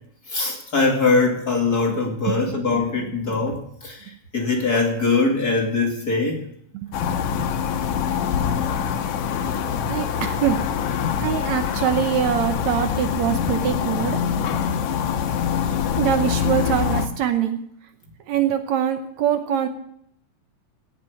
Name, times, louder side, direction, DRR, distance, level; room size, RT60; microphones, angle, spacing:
voice 1, 0.3-4.1 4.3-6.4, left 3 dB, 30° left, 1 dB, 2.5 m, -22 dB
voice 2, 2.3-2.6 9.9-10.6 11.2-14.2 16.0-17.6 18.3-19.7, right 9 dB, 70° right, 8 dB, 2.0 m, -23 dB
sound 1, 6.9-17.1, left 7 dB, 80° left, 2.5 m, -24 dB
17.5 x 7.4 x 8.3 m, 0.71 s
omnidirectional pair, 3.6 m